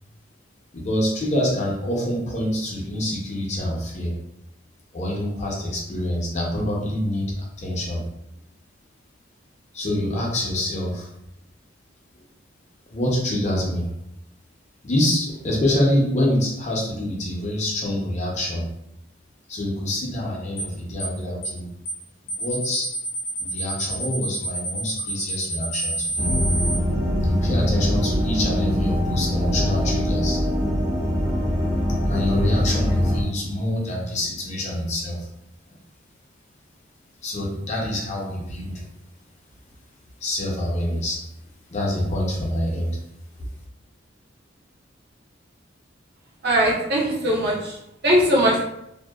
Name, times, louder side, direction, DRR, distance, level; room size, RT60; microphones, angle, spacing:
voice 1, 0.7-4.1 4.9-8.0 9.7-11.1 12.9-13.9 14.8-18.7 19.5-21.7 22.2-22.9 23.4-26.3 27.2-30.4 32.1-35.3 37.2-38.8 40.2-41.2 41.7-43.0, left 1 dB, 40° left, -2 dB, 0.6 m, -26 dB
sound 1, 20.6-20.7 21.0-21.2 21.4-21.6 21.9-22.0 22.3-26.8, right 3 dB, 80° left, 0.6 m, -28 dB
sound 2, 26.2-33.2, equal, 15° right, 0.5 m, -23 dB
voice 2, 46.4-47.7 48.0-48.7, equal, 60° right, -3 dB, 0.7 m, -20 dB
2.6 x 2.0 x 2.3 m, 0.82 s
head